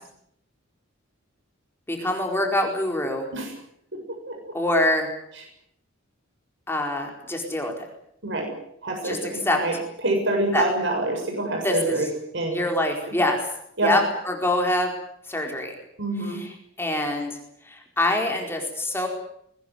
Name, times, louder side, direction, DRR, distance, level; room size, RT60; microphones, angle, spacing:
voice 1, 1.9-3.3 4.5-5.1 6.7-7.7 9.0-9.6 10.5-10.6 11.6-12.0 12.5-13.4 13.8-14.9 15.3-15.7 16.3-16.5 16.8-17.4 17.7-19.1, left 1 dB, 10° left, 2 dB, 4.5 m, -24 dB
voice 2, 4.1-4.5 8.2-8.5 8.8-12.1 12.3-12.6 13.1-13.2 13.8-13.9 16.0-16.4, right 2 dB, 60° right, 2 dB, 7.3 m, -26 dB
22.0 x 19.5 x 9.5 m, 0.72 s
head